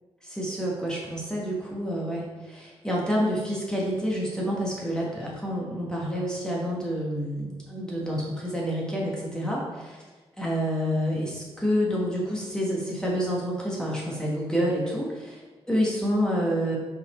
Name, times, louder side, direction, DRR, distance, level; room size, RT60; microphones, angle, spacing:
voice 1, 0.2-10.0 10.4-16.8, equal, 5° left, -4 dB, 1.4 m, -28 dB
5.3 x 4.1 x 4.3 m, 1.2 s
cardioid pair, 85°, 11 cm